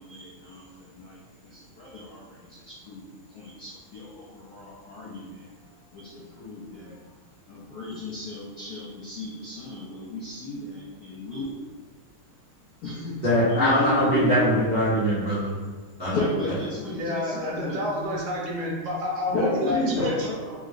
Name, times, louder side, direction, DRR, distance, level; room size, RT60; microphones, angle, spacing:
voice 1, 0.0-5.5 5.9-7.0 7.5-11.5 12.8-14.6 16.1-17.9 19.3-20.5, left 1 dB, 85° left, -6 dB, 0.8 m, -33 dB
voice 2, 13.2-15.7 16.0-16.2, equal, 10° right, -13 dB, 0.4 m, -22 dB
voice 3, 16.9-20.3, left 1 dB, 65° right, -3 dB, 1.3 m, -29 dB
3.5 x 3.0 x 2.4 m, 1.4 s
omnidirectional pair, 2.4 m